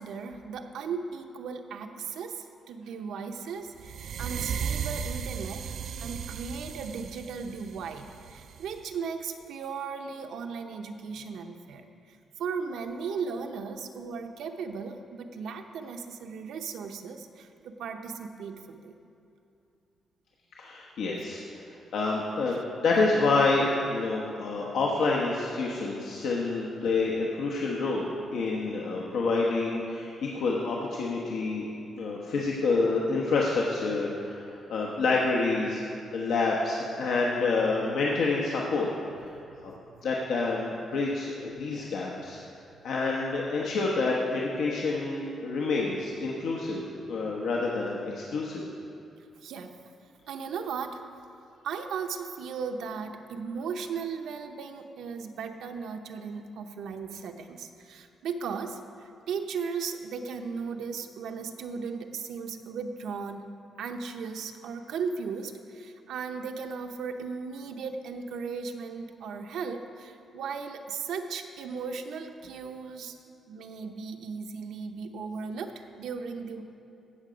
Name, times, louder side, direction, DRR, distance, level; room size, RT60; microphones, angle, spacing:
voice 1, 0.0-5.7 6.0-18.9 22.5-22.6 39.4-39.5 49.4-49.7 50.3-51.0 51.6-63.5 63.8-73.2 73.5-76.6, right 5 dB, 85° right, 5 dB, 0.8 m, -36 dB
sound 1, 3.8-8.8, right 7 dB, 55° right, 0.4 m, -35 dB
voice 2, 20.6-21.4 21.9-31.6 32.0-35.8 36.1-38.9 39.6-39.7 40.0-42.4 42.8-46.8 47.1-48.6, left 3 dB, 70° left, -3 dB, 1.1 m, -28 dB
16.0 x 6.8 x 5.1 m, 2.7 s
cardioid pair, 165°, 0 cm